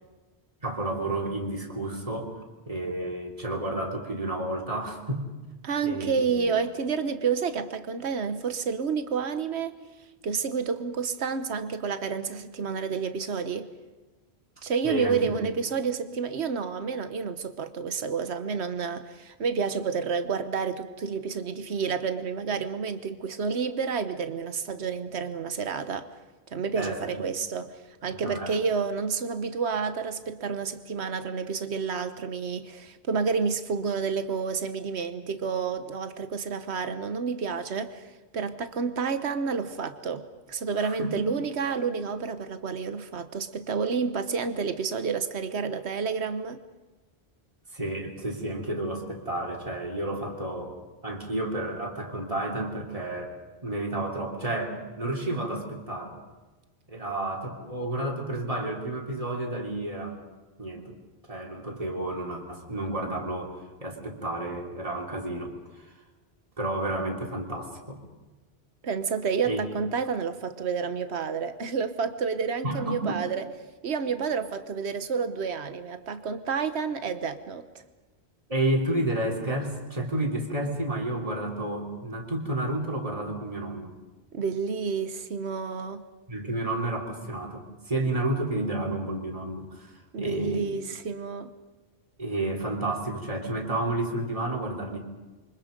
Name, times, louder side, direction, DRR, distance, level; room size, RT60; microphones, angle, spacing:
voice 1, 0.6-2.4 2.7-5.2 5.8-6.5 14.8-15.4 26.7-27.2 28.2-28.5 40.8-41.2 47.7-50.8 51.0-53.4 53.6-56.2 56.9-60.2 60.6-60.9 61.3-65.5 65.8-65.9 66.6-68.0 69.4-69.6 72.6-73.2 74.0-74.1 78.5-83.9 86.3-90.7 92.2-95.0, right 1 dB, 30° right, 3.4 m, -31 dB
voice 2, 5.6-9.8 10.2-13.7 14.6-26.1 26.5-46.6 68.8-73.5 73.8-77.7 84.3-86.0 90.1-91.5, right 5 dB, 80° right, 1.4 m, -30 dB
28.5 x 24.5 x 5.3 m
omnidirectional pair, 1.1 m